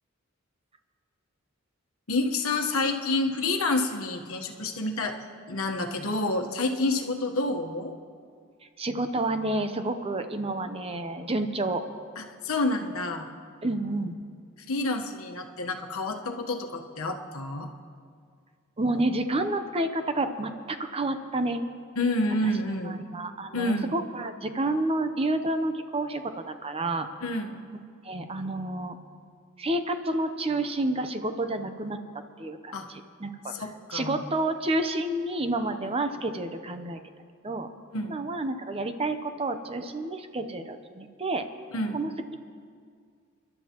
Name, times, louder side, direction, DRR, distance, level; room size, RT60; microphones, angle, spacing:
voice 1, 2.1-5.2 5.5-7.9 12.2-13.3 14.6-17.7 22.0-23.1 23.5-23.9 27.2-27.6 32.7-32.9 33.5-34.2 37.9-38.2 41.7-42.0, left 2 dB, 90° left, 3 dB, 1.2 m, -29 dB
voice 2, 8.8-11.9 13.6-14.1 18.8-21.6 22.9-27.1 28.0-29.0 29.6-32.0 32.4-33.5 33.9-37.0 37.4-37.7 38.1-41.5 41.9-42.4, right 2 dB, 30° right, 8 dB, 0.7 m, -29 dB
29.0 x 11.5 x 3.0 m, 2.2 s
head